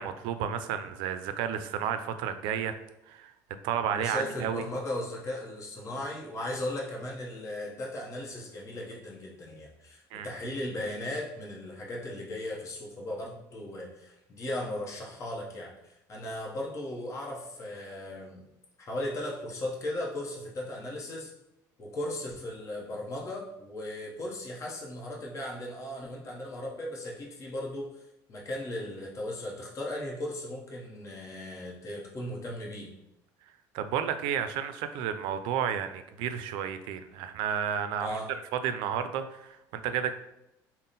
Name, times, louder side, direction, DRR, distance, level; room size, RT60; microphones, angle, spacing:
voice 1, 0.0-2.7 3.1-3.3 3.6-4.6 10.1-10.3 33.7-38.2 38.6-40.1, right 8 dB, 75° right, 10 dB, 0.4 m, -32 dB
voice 2, 3.9-18.5 18.8-21.3 21.8-28.0 28.3-32.9 38.0-38.3, left 1 dB, 35° left, -3 dB, 0.9 m, -37 dB
3.7 x 2.1 x 3.9 m, 0.84 s
supercardioid pair, 100°, 8 cm